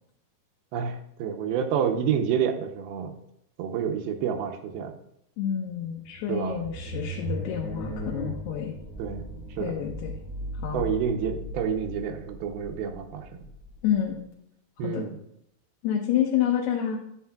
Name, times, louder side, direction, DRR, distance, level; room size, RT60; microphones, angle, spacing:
voice 1, 0.7-3.2 3.6-4.9 6.3-6.6 9.0-9.8 10.7-13.4 14.8-15.2, right 7 dB, 80° right, 4 dB, 2.5 m, -29 dB
voice 2, 5.4-8.8 9.6-10.2 10.5-10.9 13.8-14.2 14.8-15.0 15.8-17.0, left 9 dB, 85° left, 0 dB, 2.9 m, -28 dB
sound 1, 5.8-14.2, equal, 50° left, 1.3 m, -37 dB
11.0 x 8.3 x 2.3 m, 0.77 s
omnidirectional pair, 4.5 m